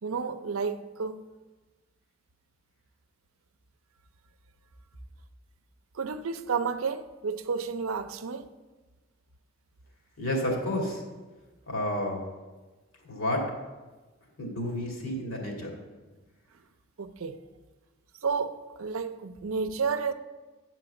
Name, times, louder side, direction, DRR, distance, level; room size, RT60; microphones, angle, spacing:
voice 1, 0.0-1.2 6.0-8.5 17.0-17.4 18.2-20.1, right 5 dB, 85° right, 0.5 m, -31 dB
voice 2, 10.2-11.0 11.7-12.2 13.1-13.5 14.4-15.8, left 1 dB, 80° left, 2.2 m, -30 dB
9.9 x 4.5 x 6.9 m
head